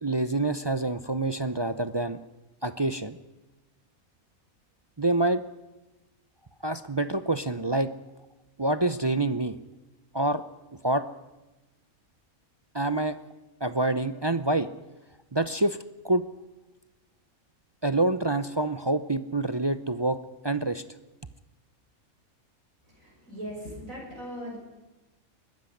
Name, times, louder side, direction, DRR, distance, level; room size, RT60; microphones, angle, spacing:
voice 1, 0.0-2.2 2.6-3.2 5.0-5.4 6.6-7.9 8.6-9.6 10.1-10.4 10.8-11.1 12.7-13.2 13.6-14.7 15.3-15.8 16.0-16.2 17.8-20.2 20.4-20.8, right 2 dB, 30° right, 12 dB, 0.4 m, -26 dB
voice 2, 22.9-24.6, equal, 70° right, -2 dB, 6.8 m, -39 dB
21.5 x 12.5 x 9.9 m, 1.1 s
omnidirectional pair, 1.5 m